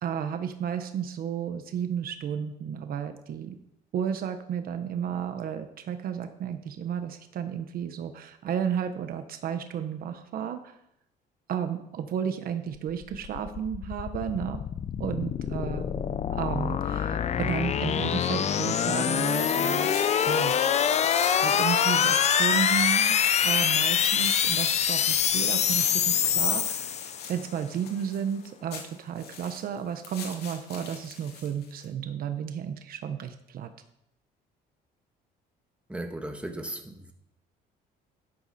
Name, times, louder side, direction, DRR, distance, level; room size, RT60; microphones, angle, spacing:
voice 1, 0.0-3.5 3.9-10.7 11.5-14.6 15.0-15.8 16.3-19.9 20.3-20.5 21.4-23.2 23.4-33.7, right 8 dB, 60° right, 8 dB, 1.2 m, -33 dB
sound 1, 12.9-27.4, left 8 dB, 40° left, 0.6 m, -25 dB
sound 2, 19.7-31.9, left 6 dB, 70° left, 2.6 m, -44 dB
voice 2, 35.9-37.1, right 1 dB, 5° right, 4 dB, 1.6 m, -36 dB
11.5 x 11.5 x 4.3 m, 0.80 s
cardioid pair, 110°, 17 cm